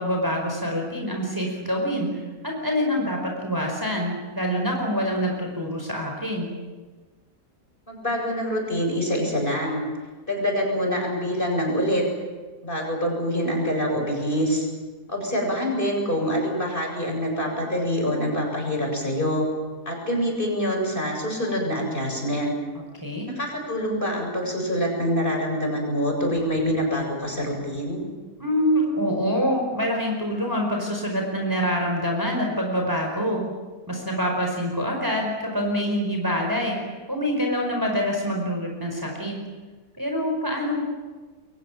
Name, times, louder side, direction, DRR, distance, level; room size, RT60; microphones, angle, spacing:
voice 1, 0.0-6.5 23.0-23.3 28.4-33.4 33.9-36.8 37.1-39.4 40.0-40.9, equal, 15° right, 1 dB, 4.8 m, -25 dB
voice 2, 7.9-9.9 10.3-12.0 12.6-14.7 15.1-19.5 19.9-22.5 23.3-28.0, equal, 35° left, 0 dB, 8.0 m, -25 dB
29.0 x 23.5 x 7.4 m, 1.3 s
omnidirectional pair, 1.6 m